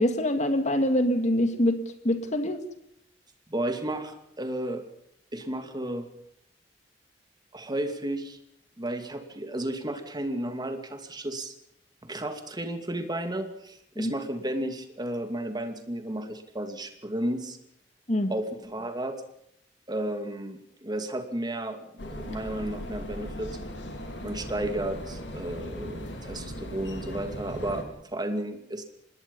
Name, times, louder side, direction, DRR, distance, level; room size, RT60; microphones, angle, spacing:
voice 1, 0.0-1.8 2.0-2.6 14.0-14.1 18.1-18.3, left 1 dB, 40° left, 8 dB, 2.3 m, -24 dB
voice 2, 3.5-4.8 5.3-6.1 7.5-8.4 8.8-11.5 12.0-17.6 18.3-19.1 19.9-23.5 24.2-27.8 28.1-28.8, right 1 dB, 25° right, 7 dB, 2.6 m, -33 dB
sound 1, 22.0-27.8, equal, 85° left, 4.2 m, -38 dB
25.5 x 20.5 x 5.5 m, 0.75 s
head